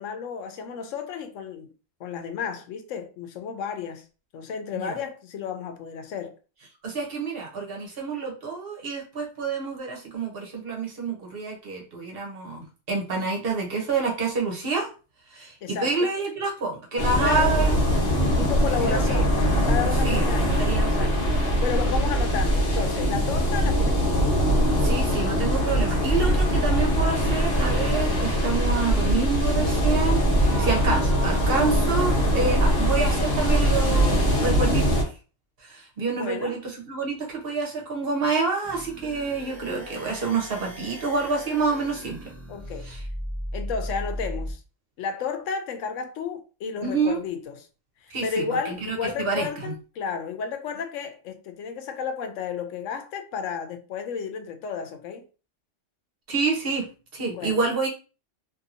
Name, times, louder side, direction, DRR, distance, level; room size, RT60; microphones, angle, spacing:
voice 1, 0.0-1.7 2.0-4.0 4.3-6.3 15.6-16.1 17.2-17.6 18.4-19.4 19.7-21.3 21.6-24.2 36.1-36.6 42.5-42.9 43.5-44.6 45.0-47.7 48.2-55.2 57.3-57.5, left 6 dB, 85° left, 1.0 m, -32 dB
voice 2, 6.8-14.9 15.3-17.7 18.2-18.4 18.8-19.2 20.0-21.3 24.8-35.1 35.6-42.3 42.8-43.0 46.8-47.2 48.1-49.7 56.3-56.9 57.1-57.9, right 4 dB, 55° right, 1.0 m, -28 dB
sound 1, 17.0-35.0, equal, 55° left, 1.1 m, -22 dB
sound 2, 38.6-44.6, equal, ahead, 0.7 m, -36 dB
2.8 x 2.6 x 2.5 m
omnidirectional pair, 1.3 m